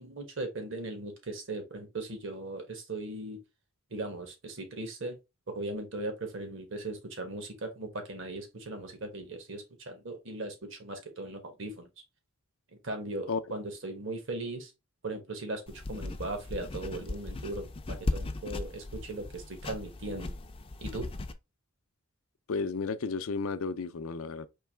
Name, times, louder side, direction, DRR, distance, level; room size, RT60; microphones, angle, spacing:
voice 1, 0.0-3.4 3.9-5.2 5.5-11.9 12.7-14.7 15.0-20.3 20.8-21.1, right 2 dB, 60° right, 1.2 m, -38 dB
sound 1, 15.7-21.3, left 2 dB, 25° left, 0.4 m, -37 dB
voice 2, 22.5-24.5, left 4 dB, 75° left, 0.5 m, -32 dB
4.6 x 3.1 x 3.3 m
head